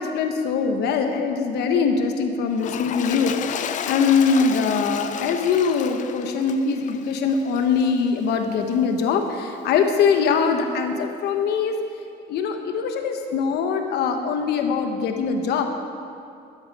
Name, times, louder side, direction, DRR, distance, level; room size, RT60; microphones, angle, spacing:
voice 1, 0.0-11.7 12.3-15.7, left 5 dB, 75° left, 5 dB, 1.1 m, -22 dB
Toilet flush, 2.5-8.0 8.7-8.8, left 9 dB, 45° left, 0.5 m, -32 dB
13.0 x 9.5 x 5.2 m, 2.5 s
cardioid pair, 110°, 17 cm